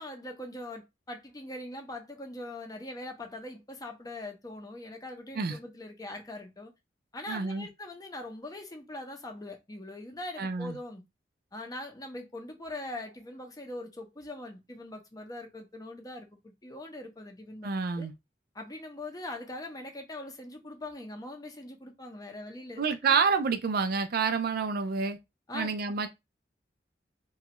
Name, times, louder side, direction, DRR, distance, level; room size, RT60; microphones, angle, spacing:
voice 1, 0.0-6.7 7.1-11.0 11.5-18.1 18.5-23.2 25.5-25.7, left 1 dB, 20° left, 0.7 m, -42 dB
voice 2, 7.3-7.7 10.4-10.8 17.6-18.1 22.8-25.2 25.5-26.1, right 5 dB, 55° right, 0.4 m, -28 dB
3.1 x 2.3 x 2.9 m
head